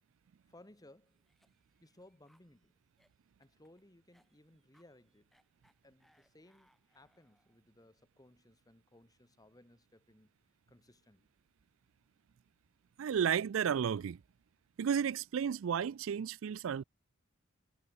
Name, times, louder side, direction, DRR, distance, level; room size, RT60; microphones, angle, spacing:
voice 1, 0.5-1.2 1.8-2.8 3.4-5.3 5.8-10.3 10.7-11.3, left 1 dB, 20° left, 1.6 m, -62 dB
Cough, 1.1-7.7, equal, ahead, 6.7 m, -74 dB
voice 2, 13.0-14.2 14.8-16.8, right 8 dB, 70° right, 0.4 m, -32 dB
head